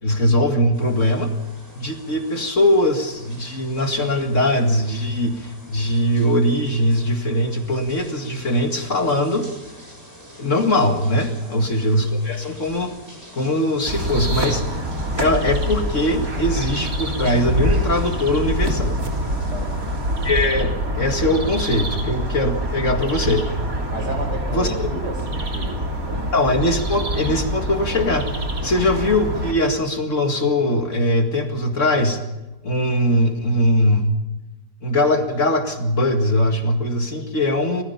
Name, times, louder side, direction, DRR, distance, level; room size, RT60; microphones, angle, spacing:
voice 1, 0.0-1.3 1.8-9.5 10.4-12.9 13.3-14.6 15.2-19.0 20.2-23.5 24.5-24.7 26.3-28.3 28.6-32.2 32.6-34.0 34.8-37.8, left 1 dB, 45° left, 4 dB, 2.3 m, -21 dB
sound 1, 0.7-20.3, right 1 dB, 10° right, 7.1 m, -45 dB
voice 2, 11.4-11.7 19.5-19.9 23.9-26.3, right 1 dB, 80° right, 5 dB, 5.1 m, -32 dB
sound 2, 13.9-29.5, right 1 dB, 55° right, 3.5 m, -25 dB
25.5 x 19.0 x 5.7 m, 1.0 s
omnidirectional pair, 1.8 m